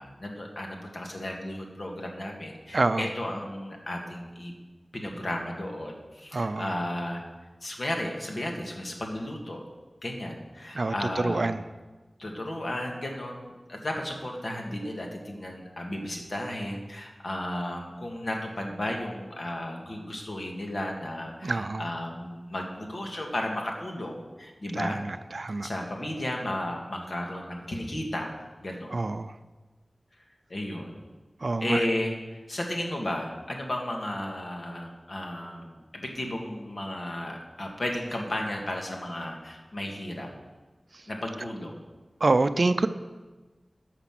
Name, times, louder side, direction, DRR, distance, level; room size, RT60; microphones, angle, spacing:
voice 1, 0.0-4.5 4.9-7.2 7.6-9.6 10.0-11.5 12.2-25.0 25.6-29.0 30.5-31.0 31.6-40.3 41.1-41.8, left 1 dB, 60° left, 1 dB, 1.9 m, -34 dB
voice 2, 2.7-3.0 6.3-6.7 10.7-11.6 21.4-21.9 24.7-25.7 28.9-29.4 31.4-31.8 42.2-42.9, right 3 dB, 60° right, 11 dB, 0.5 m, -26 dB
14.5 x 5.9 x 6.0 m, 1.3 s
wide cardioid pair, 75°, 0 cm